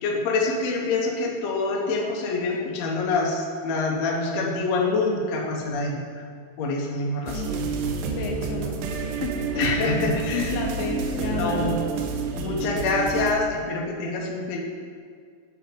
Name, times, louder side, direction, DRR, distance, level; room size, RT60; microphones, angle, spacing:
voice 1, 0.0-6.0 6.6-7.4 9.6-10.5 11.3-11.7 12.4-14.6, left 3 dB, 65° left, -1 dB, 1.8 m, -26 dB
voice 2, 7.3-7.7 8.1-9.5 9.8-11.8, left 5 dB, 80° left, 2 dB, 2.3 m, -32 dB
sound 1, 7.3-13.3, right 4 dB, 85° right, 2.4 m, -29 dB
7.3 x 5.5 x 5.1 m, 2.1 s
omnidirectional pair, 4.1 m